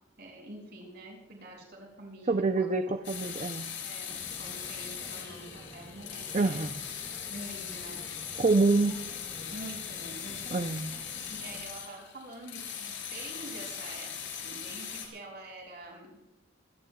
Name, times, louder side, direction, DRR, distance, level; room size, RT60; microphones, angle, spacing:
voice 1, 0.2-2.8 3.8-6.7 7.3-8.0 8.8-10.7 11.3-16.1, right 1 dB, 55° right, -1 dB, 6.0 m, -46 dB
voice 2, 2.3-3.7 6.3-6.8 8.4-8.9 10.5-10.9, right 3 dB, 35° right, 7 dB, 0.5 m, -26 dB
sound 1, 3.0-15.1, left 8 dB, 65° left, 3.8 m, -40 dB
sound 2, 4.1-11.7, equal, 5° left, 3.9 m, -51 dB
25.5 x 17.0 x 2.3 m, 0.96 s
head